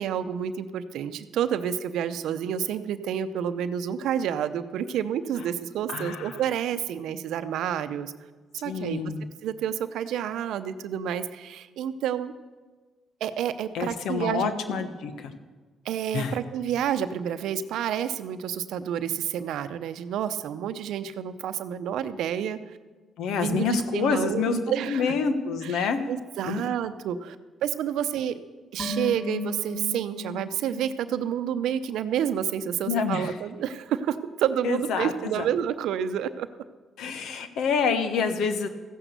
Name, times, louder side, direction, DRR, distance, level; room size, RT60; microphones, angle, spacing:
voice 1, 0.0-8.1 8.6-9.0 9.4-12.3 13.2-14.9 15.8-22.6 23.3-25.1 25.6-27.4 27.6-28.4 28.7-36.5, right 9 dB, 75° right, 11 dB, 0.7 m, -29 dB
voice 2, 5.9-6.4 8.6-9.2 13.7-15.3 16.1-16.4 23.2-26.0 26.4-26.6 32.9-33.4 34.6-35.5 37.0-38.7, left 5 dB, 75° left, 9 dB, 1.2 m, -27 dB
sound 1, 28.8-32.1 32.4-32.5, left 2 dB, 35° left, 3.4 m, -37 dB
14.5 x 10.0 x 6.8 m, 1.3 s
supercardioid pair, 60°, 0 cm